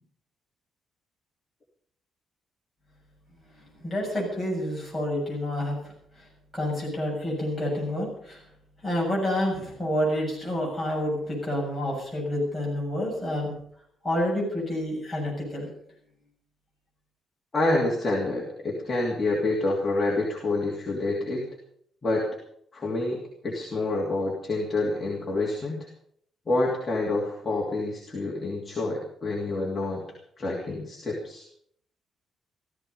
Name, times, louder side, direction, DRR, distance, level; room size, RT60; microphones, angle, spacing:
voice 1, 3.8-5.9 6.5-8.4 8.8-13.5 14.0-15.7, left 1 dB, ahead, -3 dB, 7.3 m, -28 dB
voice 2, 17.5-21.4 22.0-22.3 22.7-25.8 26.5-30.0 30.4-31.4, left 2 dB, 20° left, -4 dB, 2.8 m, -27 dB
15.5 x 14.5 x 5.5 m, 0.66 s
cardioid pair, 180°, 0 cm